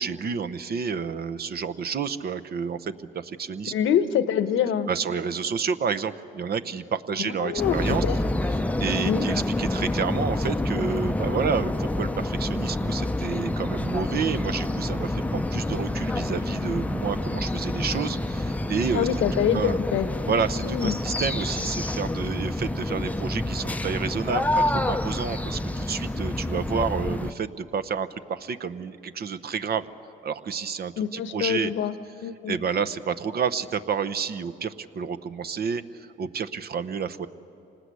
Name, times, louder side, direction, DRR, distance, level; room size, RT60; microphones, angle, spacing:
voice 1, 0.0-3.7 4.9-8.0 8.8-19.1 19.5-19.8 20.3-29.9 30.2-31.7 32.5-37.3, right 6 dB, 50° right, 10 dB, 0.8 m, -30 dB
voice 2, 3.7-4.9 7.2-8.2 9.0-9.3 18.9-20.1 20.6-21.0 31.0-32.0 32.2-32.6, left 9 dB, 80° left, 11 dB, 1.0 m, -25 dB
sound 1, 7.6-27.3, left 1 dB, 5° left, 0.6 m, -28 dB
26.5 x 19.5 x 8.3 m, 2.9 s
cardioid pair, 90°, 20 cm